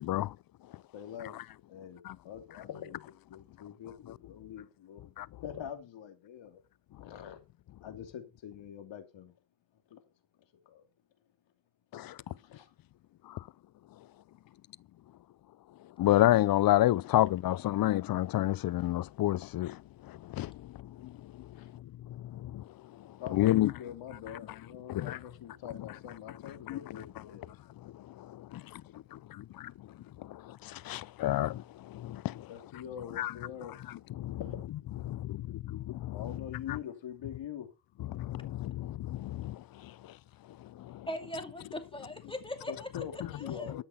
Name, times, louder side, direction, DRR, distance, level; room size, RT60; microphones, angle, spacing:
voice 1, 0.9-1.4 1.7-5.0 5.4-6.6 7.0-7.4 7.8-9.3 9.9-10.0 10.7-10.9 12.3-12.7 21.5-21.7 23.2-27.5 32.5-33.8 34.4-34.6 36.1-37.7 42.7-43.8, left 9 dB, 70° left, 2.7 m, -44 dB
voice 2, 16.0-22.6 23.0-23.7 24.9-25.2 26.7-27.2 27.8-28.3 30.2-32.5 33.2-33.3 34.2-34.4 35.0-36.4 36.7-36.8 38.0-40.1 40.6-41.1, left 14 dB, 50° left, 0.5 m, -30 dB
voice 3, 41.1-42.9 43.3-43.7, left 1 dB, 10° left, 2.3 m, -40 dB
13.0 x 5.9 x 5.7 m
cardioid pair, 85°, 46 cm